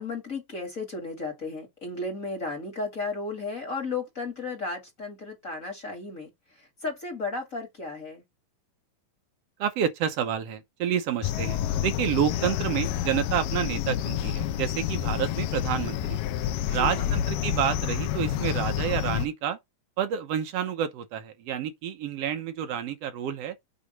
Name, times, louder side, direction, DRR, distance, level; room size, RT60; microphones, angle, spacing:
voice 1, 0.0-6.3 6.6-8.2 16.6-17.1, left 3 dB, 30° left, 1.9 m, -34 dB
voice 2, 9.6-16.2 16.7-19.6 20.0-23.5, right 9 dB, 70° right, 1.5 m, -29 dB
sound 1, 11.2-19.3, left 11 dB, 80° left, 2.3 m, -29 dB
8.2 x 3.1 x 5.2 m
omnidirectional pair, 4.0 m